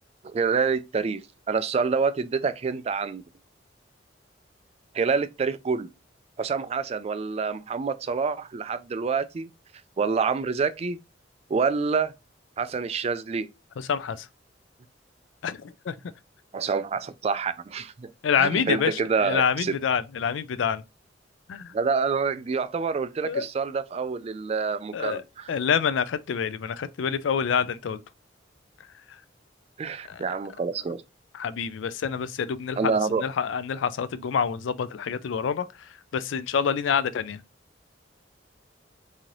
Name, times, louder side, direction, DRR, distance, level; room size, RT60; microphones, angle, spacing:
voice 1, 0.2-3.2 4.9-5.9 6.4-9.5 10.0-11.0 11.5-12.1 12.6-13.5 16.5-19.8 21.7-25.5 29.8-31.0 32.8-33.2, right 5 dB, 35° right, 0.3 m, -27 dB
voice 2, 13.8-14.3 15.4-15.9 18.2-20.8 21.5-21.7 23.2-23.5 24.9-25.2 25.5-28.0 30.1-30.2 31.3-35.7 36.1-37.4, left 7 dB, 85° left, 0.4 m, -27 dB
3.1 x 2.8 x 3.8 m
head